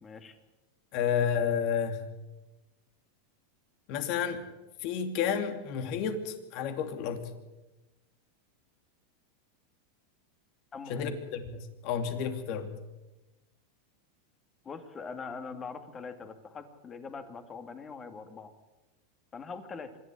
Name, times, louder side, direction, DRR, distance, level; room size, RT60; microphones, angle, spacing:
voice 1, 0.0-0.4 10.7-11.2 14.6-18.5 19.3-20.0, left 5 dB, 20° left, 8 dB, 2.4 m, -42 dB
voice 2, 0.9-2.1 3.9-4.5 4.8-7.3 10.9-12.7, left 7 dB, 50° left, 8 dB, 2.7 m, -31 dB
25.5 x 11.0 x 9.8 m, 1.1 s
supercardioid pair, 130°, 0 cm